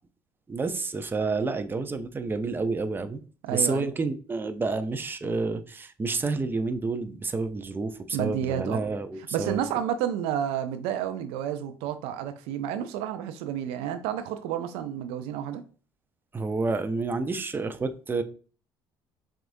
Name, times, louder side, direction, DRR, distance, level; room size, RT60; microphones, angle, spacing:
voice 1, 0.5-3.2 3.5-9.6 16.3-18.2, right 3 dB, 20° right, 0.5 m, -29 dB
voice 2, 3.4-3.9 8.1-8.8 9.3-15.6, right 10 dB, 70° right, 0.4 m, -30 dB
6.0 x 2.4 x 2.6 m
hypercardioid pair, 65°, 10 cm